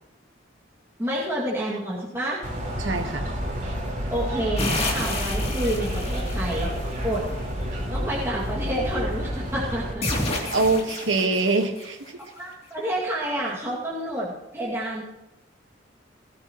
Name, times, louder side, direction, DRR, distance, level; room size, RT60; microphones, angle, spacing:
voice 1, 1.0-2.4 4.1-6.7 7.0-7.2 7.9-10.0 12.4-15.0, right 1 dB, 15° right, -7 dB, 2.3 m, -29 dB
sound 1, 2.4-9.9, equal, 45° right, 4.2 m, -29 dB
voice 2, 2.8-3.3 10.5-12.2, right 3 dB, 75° right, 5 dB, 1.5 m, -24 dB
sound 2, 4.6-6.9 10.0-12.1, left 2 dB, 35° left, 2.9 m, -30 dB
19.0 x 13.0 x 3.0 m, 0.99 s
head